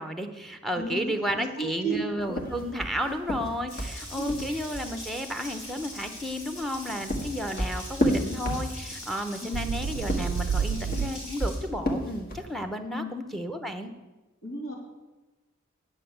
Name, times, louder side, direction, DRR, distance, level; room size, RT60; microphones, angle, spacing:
voice 1, 0.0-13.9, equal, ahead, 7 dB, 0.8 m, -32 dB
voice 2, 0.7-1.1 1.6-2.1 4.1-4.4 9.4-9.8 12.9-13.1 14.4-14.7, right 2 dB, 75° left, -1 dB, 3.2 m, -33 dB
sound 1, 2.3-4.9 6.6-9.1 9.9-12.6, equal, 45° left, 1.6 m, -30 dB
Water tap faucet, 3.7-11.6, left 1 dB, 90° left, 4.2 m, -42 dB
sound 2, 7.8-7.9 8.1-8.2 9.5-11.1, right 7 dB, 80° right, 0.3 m, -29 dB
10.0 x 6.2 x 8.0 m, 1.1 s
head